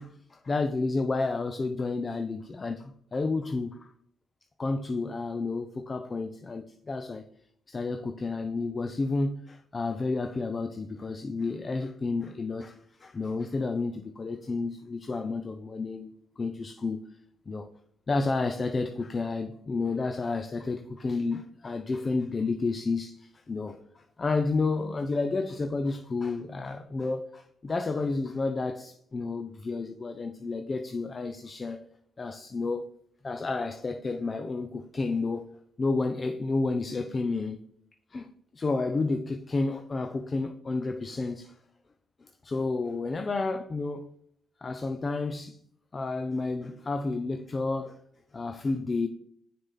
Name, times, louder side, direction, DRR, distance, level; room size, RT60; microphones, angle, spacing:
voice 1, 0.0-3.9 4.6-7.2 7.7-17.0 17.5-17.7 18.1-31.8 32.2-32.9 33.2-35.5 35.8-37.6 38.1-41.6 42.2-44.1 44.6-45.6 45.9-48.0 48.3-49.1, left 3 dB, 30° left, 0.5 m, -31 dB
6.5 x 4.1 x 3.8 m
cardioid pair, 90°, 0 cm